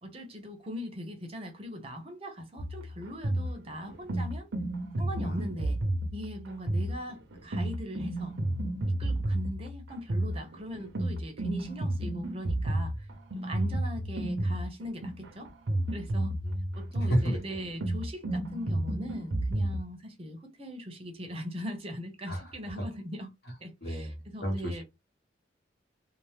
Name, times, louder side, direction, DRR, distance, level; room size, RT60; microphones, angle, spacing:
voice 1, 0.0-4.5 5.0-5.8 6.1-8.4 8.9-13.1 13.4-15.5 15.9-16.4 16.8-23.3 23.6-24.8, equal, 30° right, 0.7 m, -40 dB
sound 1, 2.6-19.8, right 1 dB, 75° right, 0.7 m, -32 dB
voice 2, 5.2-5.7 16.4-17.4 22.3-22.4 23.8-24.1 24.4-24.8, equal, 55° left, 1.2 m, -31 dB
2.8 x 2.0 x 3.3 m
head